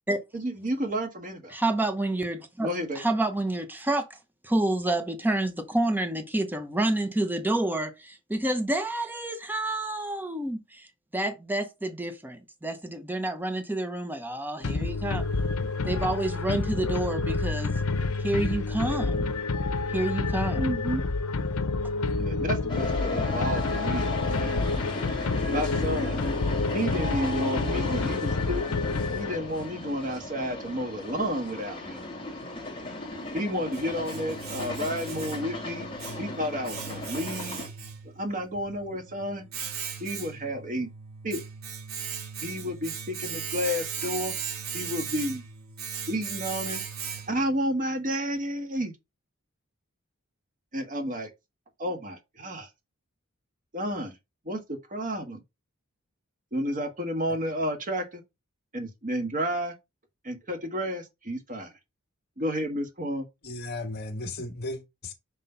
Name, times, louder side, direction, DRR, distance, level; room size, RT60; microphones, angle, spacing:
voice 1, 0.3-1.5 2.6-3.0 20.6-21.1 22.2-24.7 25.5-26.2 26.7-28.7 29.1-32.0 33.3-35.9 36.2-37.6 38.1-39.4 40.0-40.9 41.2-41.4 42.4-44.3 44.7-45.4 46.1-46.8 47.3-48.9 50.7-51.3 51.8-52.7 53.7-54.1 54.4-55.4 56.5-58.2 58.7-59.7 60.2-61.7 62.4-63.3, equal, 40° right, 1.5 m, -31 dB
voice 2, 1.5-2.7 3.0-4.2 4.4-10.9 11.1-15.2 15.8-17.7 18.2-19.3 19.9-20.7, right 1 dB, 10° right, 0.8 m, -29 dB
sound 1, 14.6-29.7, left 3 dB, 80° left, 0.7 m, -28 dB
sound 2, 22.7-37.7, left 2 dB, 25° left, 2.1 m, -35 dB
Domestic sounds home sounds, 33.2-47.6, right 6 dB, 70° right, 1.7 m, -38 dB
voice 3, 63.4-65.1, left 2 dB, 50° left, 1.6 m, -35 dB
5.7 x 3.2 x 5.4 m
head